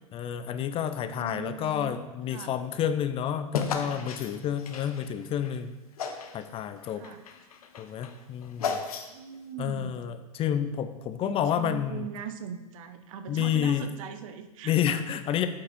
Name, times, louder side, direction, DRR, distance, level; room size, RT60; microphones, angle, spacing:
voice 1, 0.1-5.7 6.3-7.0 7.8-8.8 9.6-12.1 13.3-13.9 14.6-15.5, left 9 dB, 30° left, 10 dB, 0.5 m, -29 dB
voice 2, 1.0-1.9 2.3-2.6 7.0-7.2 9.1-10.0 11.2-15.2, right 8 dB, 60° right, 9 dB, 0.8 m, -41 dB
sound 1, 3.5-5.5 6.0-6.4 6.8-9.3, left 5 dB, 75° left, 1.0 m, -34 dB
8.4 x 5.0 x 4.4 m, 1.1 s
hypercardioid pair, 110°, 19 cm